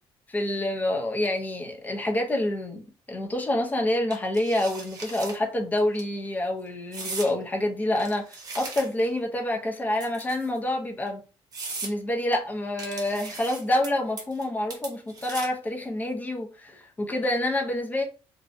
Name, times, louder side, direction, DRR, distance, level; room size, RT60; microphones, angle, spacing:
voice 1, 0.3-11.2 11.8-18.0, left 1 dB, 15° left, 0.5 m, -27 dB
sound 1, 4.1-5.4 5.8-6.0 6.9-7.3 8.0-9.1 10.0-10.6 11.1-11.2 11.5-11.9 12.8-13.9 14.2-14.5 14.7-15.6, right 3 dB, 40° right, 0.8 m, -38 dB
2.6 x 2.1 x 2.5 m
cardioid pair, 150°, 10 cm